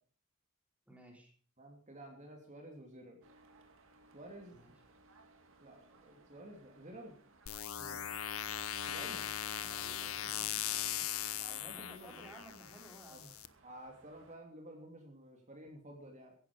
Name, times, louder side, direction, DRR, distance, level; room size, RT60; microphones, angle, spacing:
voice 1, 0.9-1.3 4.5-4.7 7.8-8.1 9.0-9.3 9.6-11.1 11.6-13.3, right 1 dB, 5° right, 1 dB, 3.5 m, -56 dB
voice 2, 1.6-3.2 4.1-4.8 5.6-7.2 8.8-9.2 9.9-11.0 11.3-12.4 13.1-13.2 13.6-16.3, right 1 dB, 35° right, 2 dB, 2.9 m, -52 dB
sound 1, 3.2-14.4, right 3 dB, 65° right, 2.5 m, -65 dB
sound 2, 7.5-13.5, left 10 dB, 75° left, 0.9 m, -39 dB
15.5 x 11.0 x 5.1 m, 0.43 s
head